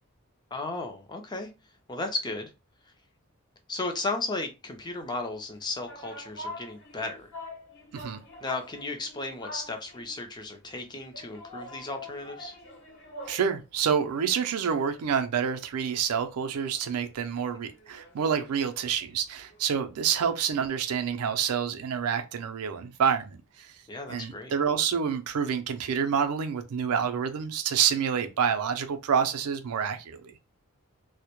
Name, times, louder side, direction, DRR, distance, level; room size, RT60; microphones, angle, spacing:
voice 1, 0.5-1.5 1.9-2.5 3.7-7.3 8.4-12.6 23.9-24.5, left 2 dB, 20° left, 0.4 m, -35 dB
sound 1, 5.4-10.2 11.1-13.5 13.8-15.8 16.1-16.2 16.5-20.7, left 1 dB, 55° left, 0.8 m, -46 dB
voice 2, 13.3-23.7 24.1-30.3, right 7 dB, 80° right, 0.4 m, -28 dB
2.1 x 2.0 x 2.9 m
head